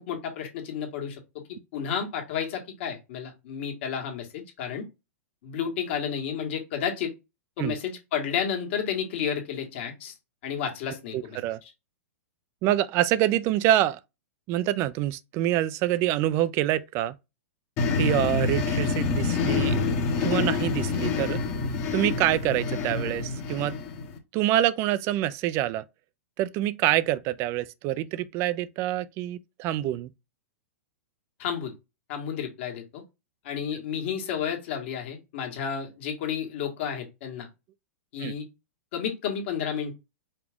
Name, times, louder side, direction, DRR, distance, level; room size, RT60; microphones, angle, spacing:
voice 1, 0.0-4.8 5.4-7.1 7.6-10.1 10.4-11.7 31.4-31.7 32.1-33.0 33.4-37.5 38.1-38.4 38.9-39.9, left 7 dB, 55° left, 1.6 m, -31 dB
voice 2, 11.1-11.6 12.6-14.0 14.5-17.2 18.0-19.8 20.2-21.4 21.9-23.7 24.3-25.8 26.4-30.1 38.2-38.3, right 13 dB, 35° right, 0.4 m, -26 dB
sound 1, 17.8-24.2, left 4 dB, 35° left, 1.0 m, -27 dB
5.0 x 2.4 x 3.5 m
hypercardioid pair, 130°, 8 cm